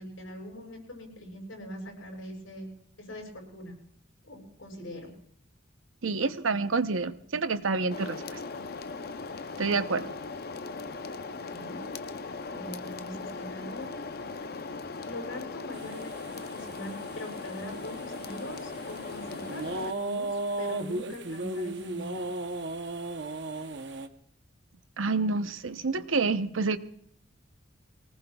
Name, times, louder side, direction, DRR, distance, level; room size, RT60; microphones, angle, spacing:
voice 1, 0.0-2.7 3.0-3.8 4.3-5.1 11.3-11.9 12.5-13.9 15.0-22.2, equal, 80° left, 0 dB, 6.8 m, -42 dB
voice 2, 6.0-8.4 9.6-10.1 25.0-26.8, right 4 dB, 90° right, 11 dB, 0.8 m, -28 dB
sound 1, 7.9-19.9, left 4 dB, 50° left, 0.6 m, -39 dB
sound 2, 15.7-24.1, right 2 dB, 60° right, 0.9 m, -36 dB
24.0 x 18.5 x 2.3 m, 0.62 s
head